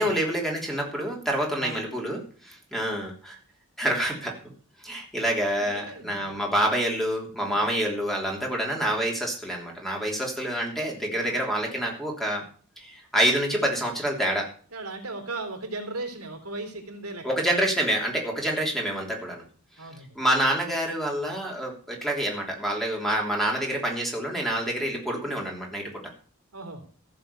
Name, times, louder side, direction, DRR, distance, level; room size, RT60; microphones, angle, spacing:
voice 1, 0.0-3.4 3.8-4.3 4.8-12.4 12.8-14.5 17.2-19.4 20.1-25.9, right 1 dB, ahead, 0 dB, 3.1 m, -27 dB
voice 2, 5.6-6.3 11.3-11.4 14.7-17.2 19.8-20.1 26.5-26.8, right 2 dB, 85° right, 5 dB, 3.3 m, -36 dB
15.0 x 6.7 x 6.9 m, 0.43 s
head